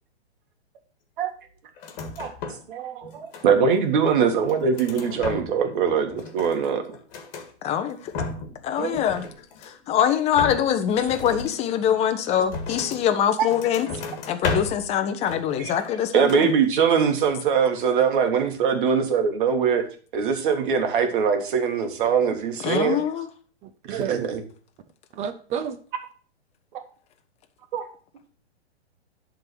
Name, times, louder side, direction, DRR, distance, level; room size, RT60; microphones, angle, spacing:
sound 1, 1.8-2.7 3.0-3.8 4.3-5.8 6.0-7.5 7.9-8.6 8.9-9.9 10.3-13.1 13.5-14.9 15.2-16.0 16.2-16.5, left 4 dB, 40° left, 1.9 m, -34 dB
voice 1, 2.7-6.8 8.8-8.9 13.4-13.5 16.1-19.8 20.1-23.0 23.9-24.4 27.7-27.8, right 6 dB, 50° right, 5 dB, 1.9 m, -22 dB
voice 2, 7.6-8.1 8.6-9.3 9.6-13.9 14.3-16.5 22.6-23.3, left 9 dB, 20° left, 7 dB, 0.9 m, -24 dB
voice 3, 23.6-24.3 25.1-25.8, right 8 dB, 20° right, 9 dB, 0.7 m, -31 dB
10.5 x 4.0 x 6.2 m, 0.42 s
figure-of-eight pair, 120°, 33 cm